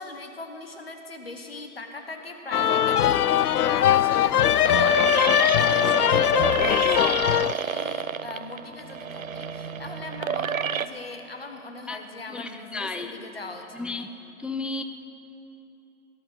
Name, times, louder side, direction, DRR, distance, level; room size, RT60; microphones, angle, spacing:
voice 1, 0.0-13.8, left 3 dB, 40° left, 5 dB, 1.3 m, -40 dB
sound 1, 2.5-7.5, left 10 dB, 90° left, 0.5 m, -21 dB
sound 2, 3.3-10.9, right 7 dB, 65° right, 0.7 m, -30 dB
voice 2, 12.3-13.1 13.7-14.1 14.4-14.8, left 3 dB, 5° right, 8 dB, 0.3 m, -33 dB
18.0 x 12.0 x 6.3 m, 2.9 s
hypercardioid pair, 180°, 44 cm